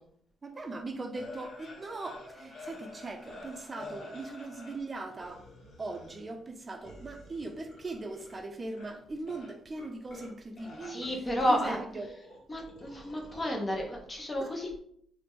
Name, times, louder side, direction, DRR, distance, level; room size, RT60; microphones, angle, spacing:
voice 1, 0.4-5.4 5.8-12.1 14.4-14.6, right 2 dB, 30° right, 0.4 m, -40 dB
sound 1, 1.1-4.9 5.2-6.4 6.8-8.4 8.6-8.9 9.3-10.3 10.6-13.5, left 2 dB, 65° left, 1.1 m, -48 dB
voice 2, 10.9-11.8 12.5-14.8, equal, 25° left, 0.5 m, -31 dB
2.8 x 2.1 x 3.4 m
cardioid pair, 90°, 0 cm